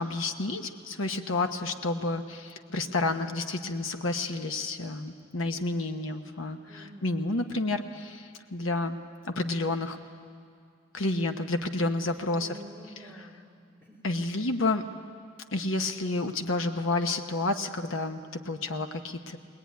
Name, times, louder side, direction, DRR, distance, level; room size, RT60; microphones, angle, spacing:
voice 1, 0.0-9.0 9.2-10.0 10.9-12.6 14.0-14.8 15.5-19.4, left 2 dB, 80° left, 6 dB, 1.0 m, -30 dB
voice 2, 6.6-7.2 12.2-14.1, equal, 10° left, -2 dB, 3.6 m, -49 dB
21.0 x 21.0 x 9.4 m, 2.2 s
head